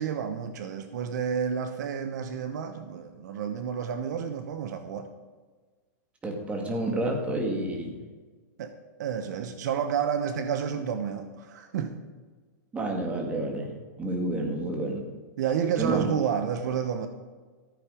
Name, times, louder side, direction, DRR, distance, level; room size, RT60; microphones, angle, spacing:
voice 1, 0.0-5.1 8.6-8.7 9.0-12.0 15.4-17.1, right 7 dB, 65° right, 8 dB, 1.1 m, -30 dB
voice 2, 6.2-7.9 12.7-13.7 14.0-15.1 15.8-16.1, right 2 dB, 10° right, 1 dB, 2.3 m, -29 dB
14.0 x 8.7 x 5.1 m, 1.4 s
hypercardioid pair, 145°, 10 cm